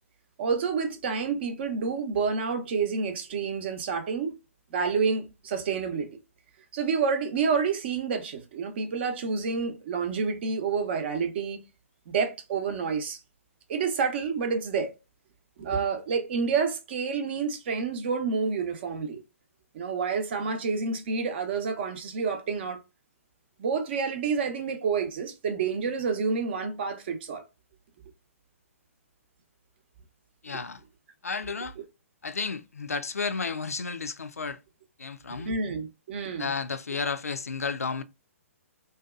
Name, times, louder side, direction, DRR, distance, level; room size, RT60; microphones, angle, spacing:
voice 1, 0.4-4.4 4.7-6.1 6.7-11.6 12.1-13.2 13.7-14.9 15.6-19.2 19.7-22.8 23.6-27.4 35.3-36.5, right 5 dB, 45° right, 0.6 m, -29 dB
voice 2, 30.4-30.8 31.2-31.8 32.2-34.6 35.0-35.5 36.4-38.0, left 5 dB, 85° left, 0.3 m, -32 dB
2.6 x 2.2 x 2.3 m
figure-of-eight pair, 125°, 8 cm